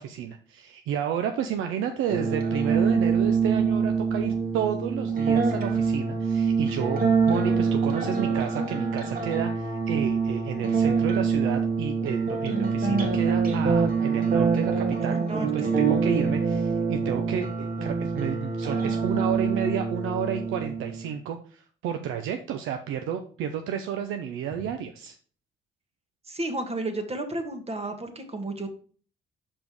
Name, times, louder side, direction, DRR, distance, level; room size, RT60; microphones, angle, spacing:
voice 1, 0.0-25.1, right 8 dB, 90° right, 6 dB, 0.6 m, -31 dB
sound 1, 2.1-21.0, right 5 dB, 45° right, 1.7 m, -25 dB
voice 2, 15.0-15.7 24.6-24.7 26.2-28.7, right 2 dB, 30° right, 6 dB, 1.3 m, -33 dB
5.4 x 5.2 x 4.6 m, 0.43 s
cardioid pair, 90°, 20 cm